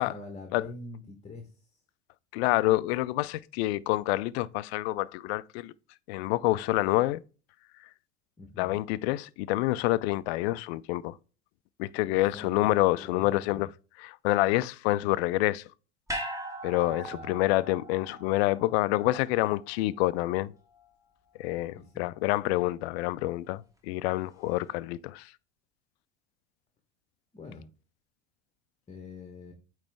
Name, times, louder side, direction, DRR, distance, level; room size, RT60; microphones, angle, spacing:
voice 1, 0.0-1.5 8.4-8.8 12.1-13.6 16.9-17.3 21.7-22.1 27.3-27.7 28.9-29.5, left 3 dB, 20° left, 1.2 m, -45 dB
voice 2, 2.3-5.7 6.1-7.2 8.6-11.2 11.8-13.7 14.0-15.6 16.6-20.5 21.4-25.3, left 18 dB, 60° left, 0.5 m, -27 dB
sound 1, 16.1-20.4 20.7-20.8, right 1 dB, 10° right, 1.7 m, -40 dB
8.6 x 3.3 x 3.4 m
hypercardioid pair, 75°, 36 cm